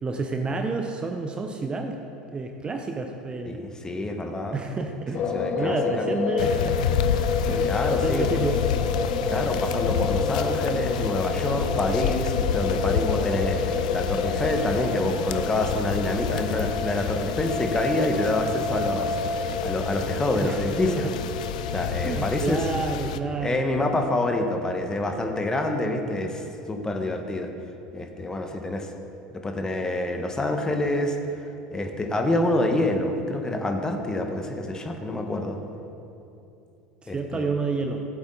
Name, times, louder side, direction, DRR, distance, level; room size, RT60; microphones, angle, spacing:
voice 1, 0.0-2.0 2.3-3.6 4.5-7.0 7.4-8.9 20.4-20.6 20.9-21.1 22.0-23.6 37.0-38.1, right 3 dB, 25° right, 4 dB, 0.8 m, -30 dB
voice 2, 3.5-4.6 5.3-6.0 7.6-8.3 9.3-21.1 21.7-22.7 23.4-27.5 27.9-28.9 29.3-31.2 31.7-35.6 37.1-37.5, left 1 dB, 15° left, 4 dB, 1.3 m, -27 dB
sound 1, 5.1-22.4, left 5 dB, 45° left, 1.0 m, -29 dB
sound 2, 6.4-23.2, left 7 dB, 70° left, 0.5 m, -30 dB
15.5 x 7.8 x 3.9 m, 2.7 s
figure-of-eight pair, 75°, 4 cm